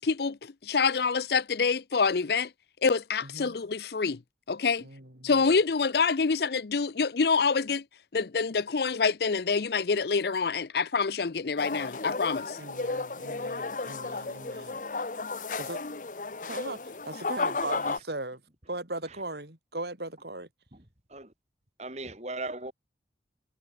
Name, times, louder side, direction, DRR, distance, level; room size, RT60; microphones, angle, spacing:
voice 1, 0.0-2.5 2.8-4.2 4.5-4.9 5.2-7.8 8.1-12.6, left 5 dB, 60° left, 0.6 m, -26 dB
voice 2, 3.2-3.6 4.8-5.3 12.6-14.8 15.6-15.8 16.4-16.8 17.1-18.4 18.7-20.5, right 2 dB, 65° right, 5.4 m, -38 dB
sound 1, 11.6-18.0, left 3 dB, 45° left, 0.9 m, -34 dB
voice 3, 20.7-21.3 21.8-22.7, right 2 dB, 40° right, 3.7 m, -39 dB
head